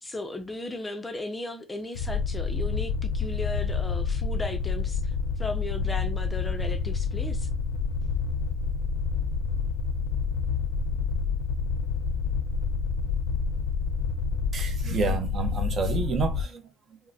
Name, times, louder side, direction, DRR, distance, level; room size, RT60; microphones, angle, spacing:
voice 1, 0.0-7.5, left 2 dB, 15° left, 0.5 m, -36 dB
sound 1, 1.9-16.4, left 5 dB, 85° left, 0.5 m, -28 dB
voice 2, 14.5-17.0, right 5 dB, 40° right, 0.6 m, -30 dB
3.6 x 2.0 x 2.6 m
cardioid pair, 130°, 0 cm